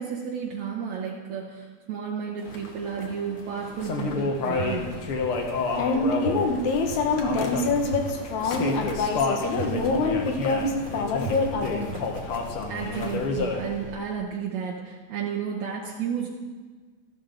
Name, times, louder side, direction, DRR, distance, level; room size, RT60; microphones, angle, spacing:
voice 1, 0.0-5.1 12.7-16.3, right 7 dB, 75° right, -3 dB, 2.4 m, -32 dB
sound 1, 2.4-4.1 4.4-5.0 5.3-13.3, right 1 dB, 30° right, 1.7 m, -46 dB
sound 2, 2.5-14.0, left 3 dB, 55° left, 1.8 m, -30 dB
sound 3, 4.6-4.7 5.2-5.3 6.2-6.3 6.9-7.0 7.9-8.0 8.5-8.6 9.6-9.7 10.2-10.3 11.2-11.3 11.9-12.0, right 12 dB, 60° right, 1.2 m, -33 dB
voice 2, 5.7-12.6, left 3 dB, 75° left, 3 dB, 2.4 m, -26 dB
13.5 x 12.0 x 3.8 m, 1.4 s
omnidirectional pair, 3.3 m